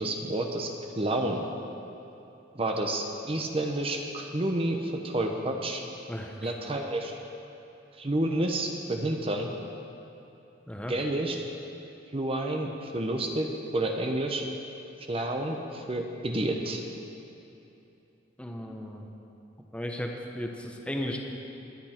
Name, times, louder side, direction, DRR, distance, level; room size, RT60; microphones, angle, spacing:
voice 1, 0.0-1.5 2.5-5.8 6.4-7.1 8.0-9.5 10.9-11.4 12.1-13.5 13.7-14.4 15.1-16.8, right 1 dB, 30° right, 3 dB, 0.8 m, -29 dB
voice 2, 6.1-6.5 10.7-10.9 18.4-19.1 19.7-21.2, equal, 5° left, 1 dB, 1.0 m, -35 dB
22.5 x 8.6 x 4.4 m, 2.9 s
head